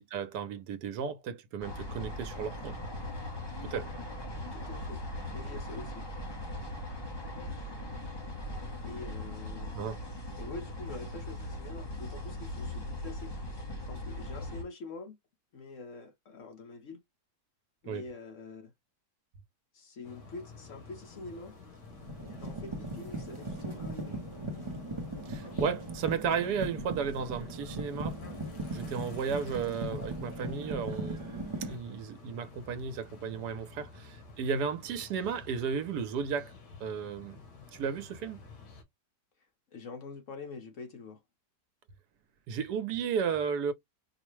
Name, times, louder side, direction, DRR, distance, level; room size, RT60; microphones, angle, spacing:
voice 1, 0.0-2.8 3.7-3.9 9.7-10.0 17.9-18.0 25.3-28.2 28.7-31.3 31.6-36.5 36.8-37.4 37.7-38.4 42.5-43.7, right 6 dB, 75° right, 1.2 m, -34 dB
sound 1, 1.6-14.6, left 1 dB, 25° left, 0.6 m, -39 dB
voice 2, 4.5-5.0 5.3-6.1 8.8-9.8 10.4-13.3 13.9-15.2 15.5-17.0 17.8-18.7 19.7-21.5 22.4-24.2 29.5-29.6 39.7-41.2, left 3 dB, 60° left, 0.9 m, -45 dB
sound 2, 20.0-38.8, left 4 dB, 90° left, 1.9 m, -51 dB
sound 3, 21.1-21.3 21.8-31.8, right 1 dB, 30° right, 0.5 m, -38 dB
4.7 x 2.1 x 3.0 m
omnidirectional pair, 1.8 m